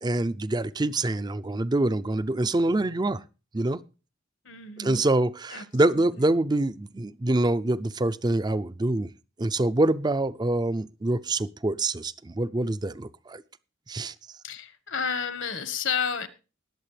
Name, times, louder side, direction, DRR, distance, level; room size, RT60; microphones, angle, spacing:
voice 1, 0.0-3.2 3.5-3.8 4.8-9.1 9.4-13.4 13.9-14.1, right 2 dB, 20° right, 0.5 m, -25 dB
voice 2, 4.4-5.2 5.5-6.3 14.4-16.3, left 6 dB, 70° left, 1.4 m, -32 dB
20.0 x 7.5 x 3.3 m
head